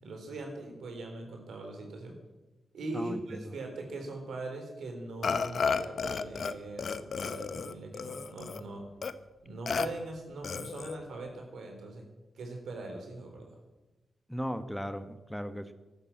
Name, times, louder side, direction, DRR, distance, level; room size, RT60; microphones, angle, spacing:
voice 1, 0.0-2.1 2.7-8.9 9.4-12.0 12.3-13.5, right 2 dB, 75° right, 3 dB, 4.0 m, -41 dB
voice 2, 2.9-3.4 14.3-15.7, equal, ahead, 10 dB, 1.2 m, -37 dB
Burping eructation, 5.2-6.5 6.8-8.6 9.0-9.1 9.7-9.9 10.4-11.0, left 5 dB, 65° left, 0.9 m, -32 dB
12.5 x 12.0 x 8.7 m, 1.1 s
supercardioid pair, 45°, 0 cm